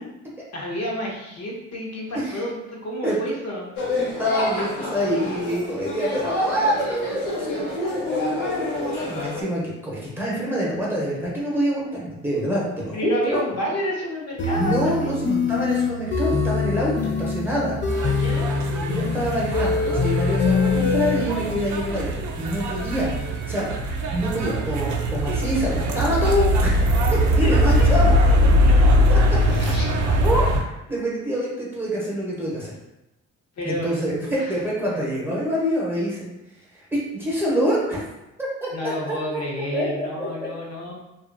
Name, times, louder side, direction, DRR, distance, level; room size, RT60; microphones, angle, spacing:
voice 1, 0.5-4.2 12.9-15.1 18.1-18.4 27.4-27.9 28.3-28.4 28.6-29.0 29.4-29.8 33.6-33.9 34.4-34.6 38.7-40.9, left 1 dB, 60° left, -3 dB, 0.9 m, -30 dB
sound 1, 3.8-9.4, left 2 dB, 85° left, 0.8 m, -29 dB
voice 2, 3.9-13.4 14.6-17.8 18.8-23.7 24.1-28.2 29.1-29.9 30.2-30.6 30.9-32.7 33.6-36.3 36.7-38.1 38.6-39.2 39.7-40.3, equal, 5° right, -6 dB, 0.9 m, -26 dB
sound 2, 14.4-21.2, left 4 dB, 40° left, 0.4 m, -24 dB
sound 3, 17.9-30.6, equal, 70° right, 0.5 m, -21 dB
2.6 x 2.4 x 2.5 m, 0.92 s
cardioid pair, 90°, 30 cm